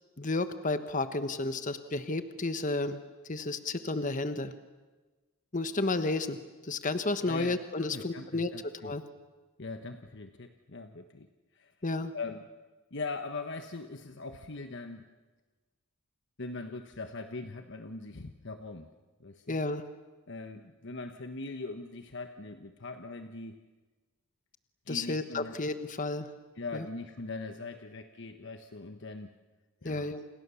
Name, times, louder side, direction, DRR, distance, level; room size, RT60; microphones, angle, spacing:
voice 1, 0.2-3.0 3.3-4.5 5.5-6.4 6.6-8.5 8.8-9.0 11.8-12.1 19.5-19.8 24.9-26.3 26.7-26.8 29.8-30.3, left 2 dB, 35° left, 10 dB, 1.2 m, -32 dB
voice 2, 7.3-8.9 9.6-11.3 11.5-11.7 12.1-12.5 12.9-15.1 16.4-18.9 19.2-19.6 20.3-23.6 24.9-25.6 26.5-29.3 29.8-30.2, left 3 dB, 55° left, 7 dB, 1.2 m, -41 dB
29.5 x 29.0 x 7.1 m, 1.2 s
head